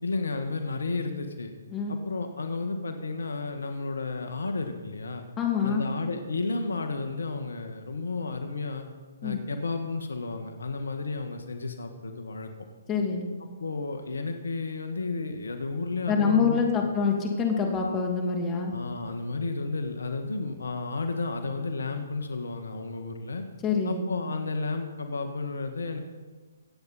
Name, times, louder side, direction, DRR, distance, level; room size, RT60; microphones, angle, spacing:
voice 1, 0.0-1.5 1.9-5.2 5.6-8.9 9.2-12.5 13.6-16.9 18.7-23.4 23.8-26.0, left 3 dB, 75° left, 6 dB, 1.5 m, -32 dB
voice 2, 5.4-5.8 9.2-9.4 12.9-13.3 16.1-18.7 23.6-24.0, left 5 dB, 20° left, 1 dB, 2.6 m, -26 dB
23.5 x 8.7 x 4.3 m, 1.4 s
figure-of-eight pair, 135°, 0 cm